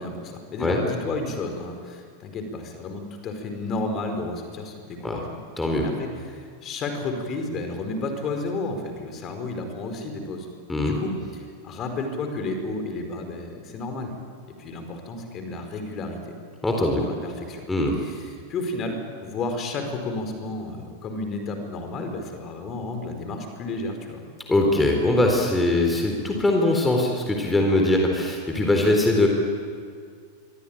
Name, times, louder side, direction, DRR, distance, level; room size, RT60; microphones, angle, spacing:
voice 1, 0.0-5.3 5.8-10.5 10.8-14.1 14.6-16.2 16.8-17.6 18.0-24.2, left 2 dB, 30° left, 5 dB, 4.8 m, -32 dB
voice 2, 16.6-17.0 17.7-18.0 24.5-29.3, left 2 dB, 10° left, 1 dB, 4.0 m, -21 dB
26.5 x 24.0 x 9.1 m, 2.1 s
figure-of-eight pair, 90°, 0 cm